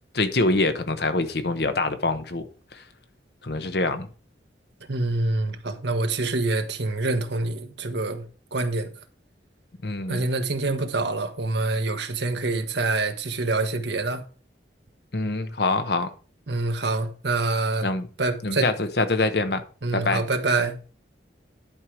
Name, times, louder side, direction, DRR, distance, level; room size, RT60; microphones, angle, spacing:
voice 1, 0.1-2.5 2.7-2.8 3.4-4.1 9.8-10.2 15.1-16.1 17.8-18.1 18.4-19.6 19.9-20.2, left 2 dB, 60° left, 1.0 m, -25 dB
voice 2, 4.9-8.2 8.5-8.9 10.1-14.2 16.5-17.9 18.2-18.7 19.8-20.8, right 3 dB, 70° right, 1.2 m, -26 dB
11.0 x 4.7 x 4.9 m
head